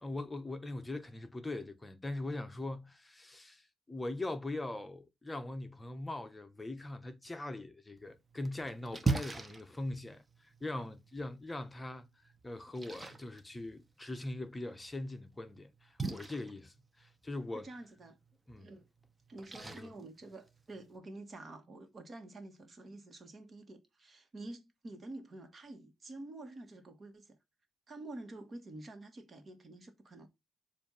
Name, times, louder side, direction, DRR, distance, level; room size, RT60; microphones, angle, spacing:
voice 1, 0.0-17.7 18.5-18.7 19.6-19.9, left 2 dB, 15° left, 0.9 m, -41 dB
Splash splatter, 8.0-21.0, right 4 dB, 20° right, 0.9 m, -43 dB
voice 2, 17.5-18.2 18.6-18.9 19.3-27.4 27.9-30.3, right 2 dB, 40° right, 1.5 m, -48 dB
7.0 x 2.7 x 5.5 m
cardioid pair, 90°, 0 cm